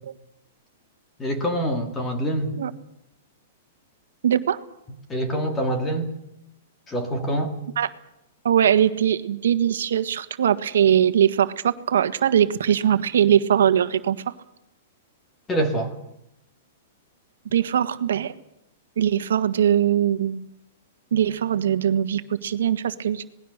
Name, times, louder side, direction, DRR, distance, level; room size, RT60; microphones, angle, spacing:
voice 1, 1.2-2.6 5.1-6.1 6.9-7.6 15.5-15.9, right 1 dB, 10° left, 6 dB, 2.1 m, -25 dB
voice 2, 4.2-4.6 7.8-7.9 8.4-14.3 17.5-18.3 19.0-20.5 21.1-23.2, right 9 dB, 85° right, 10 dB, 1.6 m, -21 dB
27.0 x 19.0 x 6.7 m, 0.83 s
supercardioid pair, 175°, 0 cm